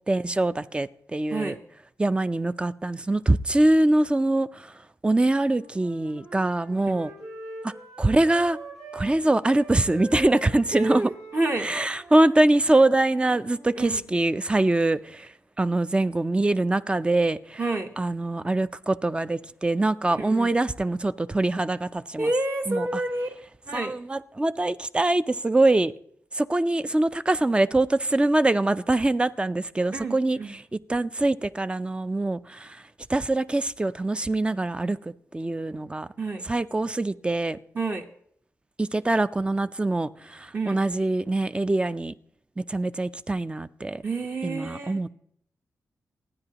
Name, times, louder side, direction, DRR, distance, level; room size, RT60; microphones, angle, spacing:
voice 1, 0.1-1.5 2.0-4.7 5.0-7.1 7.6-7.7 8.0-8.6 8.9-11.1 11.6-15.3 15.6-17.6 18.0-22.3 22.7-22.8 23.7-25.9 26.3-30.4 30.9-32.8 33.1-36.1 36.5-37.6 38.8-42.1 42.6-44.0 44.4-45.1, right 2 dB, 20° right, 14 dB, 0.5 m, -23 dB
Wind instrument woodwind instrument, 5.2-9.1 9.4-13.7, right 2 dB, 75° right, 7.6 m, -43 dB
voice 2, 10.7-11.7 13.8-14.0 17.6-17.9 20.1-20.6 22.2-23.4 23.7-24.0 29.9-30.6 36.2-36.5 37.7-38.1 40.5-40.8 44.0-45.0, right 2 dB, 35° right, 4 dB, 1.0 m, -29 dB
28.5 x 9.8 x 2.9 m, 0.67 s
cardioid pair, 80°, 6 cm